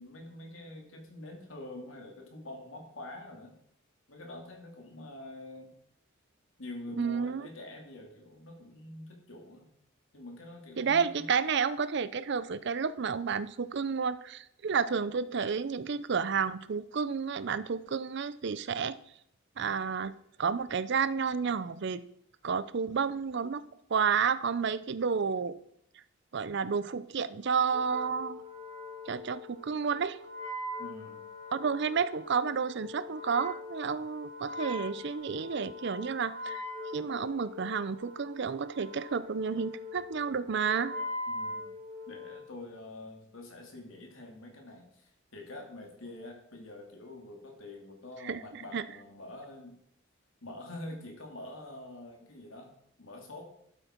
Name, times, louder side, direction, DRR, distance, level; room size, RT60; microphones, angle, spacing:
voice 1, 0.0-3.5 4.1-5.7 6.6-9.7 10.1-11.3 30.8-31.2 41.3-41.7 42.1-49.8 50.4-53.5, left 1 dB, 75° left, 2 dB, 2.5 m, -46 dB
voice 2, 7.0-7.5 10.8-19.0 19.6-20.1 20.4-22.1 22.4-23.6 23.9-25.6 26.3-28.4 29.1-30.2 31.5-36.6 36.9-40.9 48.2-48.8, right 6 dB, 55° right, 16 dB, 0.5 m, -31 dB
Wind instrument woodwind instrument, 27.7-42.4, left 2 dB, 40° right, 2.4 m, -42 dB
12.0 x 8.1 x 4.4 m, 0.72 s
head